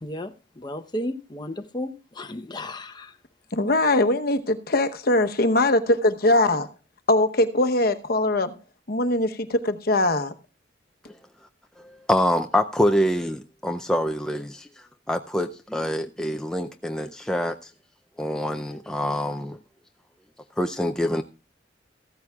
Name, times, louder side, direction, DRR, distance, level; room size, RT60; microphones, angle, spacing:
voice 1, 0.0-3.2, left 1 dB, 25° left, 0.8 m, -34 dB
voice 2, 3.5-6.7 7.1-8.5 8.9-10.3, left 2 dB, 55° left, 1.0 m, -21 dB
voice 3, 11.8-14.7 15.1-17.6 18.2-19.6 20.6-21.2, equal, 5° left, 0.4 m, -25 dB
15.0 x 13.5 x 2.3 m
head